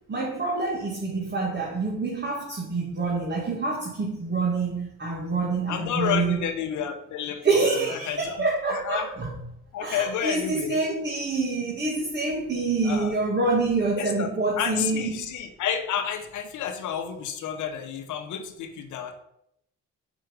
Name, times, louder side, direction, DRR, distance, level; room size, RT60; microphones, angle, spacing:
voice 1, 0.1-6.5 7.4-9.3 9.8-15.2, right 3 dB, 35° right, -2 dB, 2.0 m, -26 dB
voice 2, 5.7-9.1 9.7-10.8 12.8-13.1 14.0-14.3 14.6-19.1, left 8 dB, 80° left, 6 dB, 1.0 m, -31 dB
7.4 x 5.8 x 5.3 m, 0.77 s
cardioid pair, 90°, 30 cm